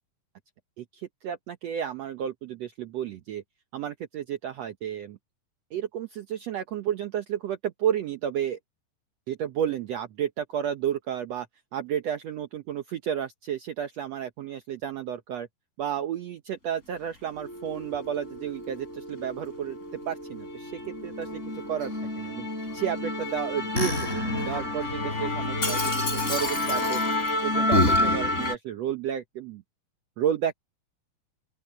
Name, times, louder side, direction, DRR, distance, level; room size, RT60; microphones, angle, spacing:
voice 1, 1.2-3.4 3.7-5.2 5.7-8.6 9.3-11.5 11.7-15.5 15.8-19.8 20.1-22.5 22.7-27.0 27.4-29.6 30.2-30.5, right 9 dB, 65° right, 1.7 m, -32 dB
Musical instrument, 17.4-28.6, left 2 dB, 20° left, 3.8 m, -28 dB
open air
omnidirectional pair, 3.9 m